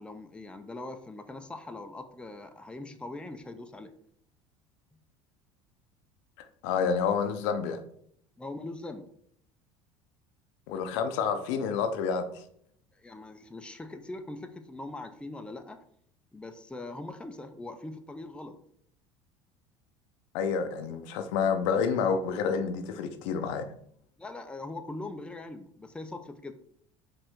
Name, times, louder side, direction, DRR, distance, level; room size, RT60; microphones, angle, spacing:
voice 1, 0.0-3.9 8.4-9.1 13.0-15.8 16.3-18.6 24.2-26.5, left 2 dB, 5° left, 7 dB, 0.5 m, -41 dB
voice 2, 6.6-7.8 10.7-12.3 20.3-23.7, left 6 dB, 70° left, 7 dB, 0.6 m, -28 dB
5.1 x 2.6 x 3.5 m, 0.66 s
hypercardioid pair, 75°, 16 cm